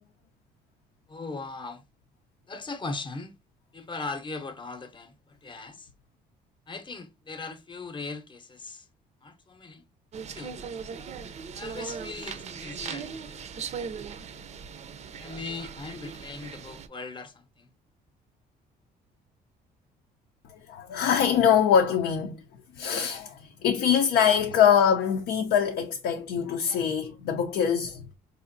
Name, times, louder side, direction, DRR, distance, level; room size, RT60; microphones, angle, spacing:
voice 1, 1.1-1.8 2.5-3.3 3.7-5.9 6.7-8.9 9.2-9.8 10.3-10.6 11.5-13.7 15.2-17.7 24.5-24.7, left 3 dB, 30° left, 0.8 m, -39 dB
sound 1, 10.1-16.9, right 6 dB, 40° right, 0.5 m, -39 dB
voice 2, 20.5-22.4 22.8-28.1, left 8 dB, 75° left, 0.6 m, -23 dB
4.8 x 2.5 x 2.5 m
cardioid pair, 110°, 17 cm